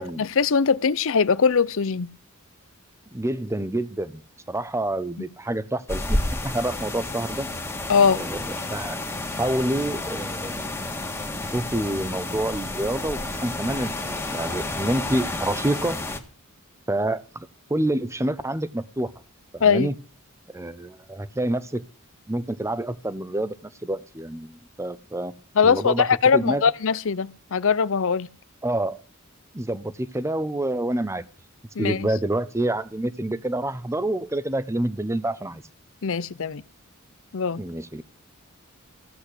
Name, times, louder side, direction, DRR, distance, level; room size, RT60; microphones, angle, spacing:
voice 1, 0.0-2.1 7.9-8.2 19.6-19.9 25.6-28.3 31.8-32.0 36.0-36.6 37.3-37.6, left 6 dB, 65° left, 0.6 m, -21 dB
voice 2, 3.1-4.2 4.5-7.5 8.1-9.0 9.4-10.8 11.5-16.0 16.9-19.1 19.5-20.0 20.5-21.8 22.3-23.5 23.8-25.3 25.6-26.7 28.6-29.0 29.5-31.2 31.8-35.6 37.6-38.0, right 1 dB, 15° right, 0.8 m, -27 dB
sound 1, 5.9-16.2, left 2 dB, 10° left, 1.7 m, -30 dB
16.0 x 8.2 x 8.3 m
head